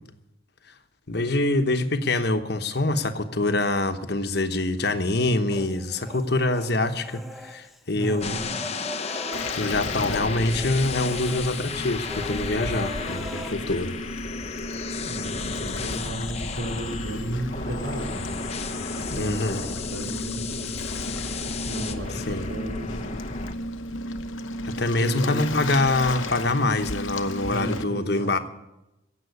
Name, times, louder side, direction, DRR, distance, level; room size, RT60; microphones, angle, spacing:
voice 1, 1.1-8.4 9.0-9.2 9.6-14.0 19.1-19.6 22.3-22.5 24.6-28.4, left 2 dB, 55° left, 1.1 m, -25 dB
Human voice, 5.5-6.7 7.0-10.3 10.5-10.7 11.1-13.5, left 1 dB, ahead, 0.8 m, -40 dB
voice 2, 7.9-8.6 15.0-18.4 18.9-20.8 21.7-23.2 25.0-25.8 27.5-28.4, right 1 dB, 70° right, 2.9 m, -34 dB
sound 1, 8.2-23.5, left 4 dB, 30° left, 0.7 m, -33 dB
Waves surf, 9.3-27.8, left 1 dB, 85° left, 1.0 m, -35 dB
16.5 x 7.6 x 9.5 m
head